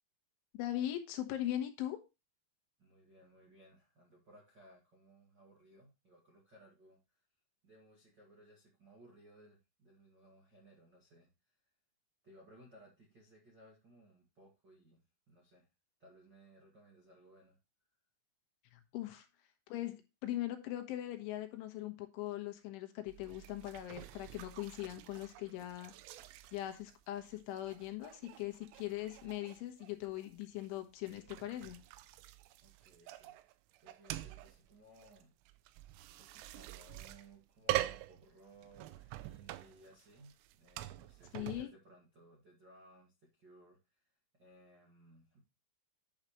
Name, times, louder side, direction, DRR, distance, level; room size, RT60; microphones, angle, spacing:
voice 1, 0.5-2.0 18.7-19.3 19.7-25.9 26.5-31.8 41.3-41.7, left 13 dB, 75° left, 6 dB, 3.5 m, -40 dB
voice 2, 2.8-7.2 7.6-11.6 12.2-15.7 16.0-17.6 32.6-33.4 33.8-35.3 36.1-45.4, right 1 dB, 70° right, -2 dB, 1.0 m, -61 dB
sound 1, 23.1-41.6, right 16 dB, 85° right, 3.1 m, -45 dB
10.5 x 6.6 x 3.1 m, 0.26 s
omnidirectional pair, 5.8 m